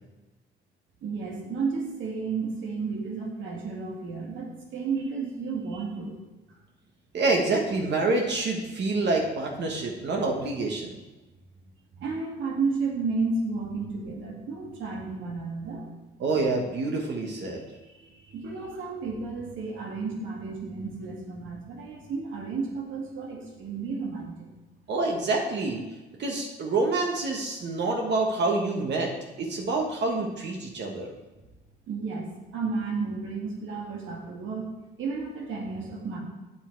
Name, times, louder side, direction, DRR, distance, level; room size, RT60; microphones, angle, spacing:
voice 1, 1.0-6.2 12.0-15.9 18.3-24.5 31.9-34.7 35.0-36.2, right 4 dB, 75° right, 0 dB, 2.3 m, -32 dB
voice 2, 7.1-11.0 16.2-17.6 24.9-25.9 26.2-29.1 29.4-31.1, right 3 dB, 60° right, 1 dB, 1.4 m, -27 dB
8.4 x 7.1 x 4.6 m, 1.1 s
cardioid pair, 90°, 20 cm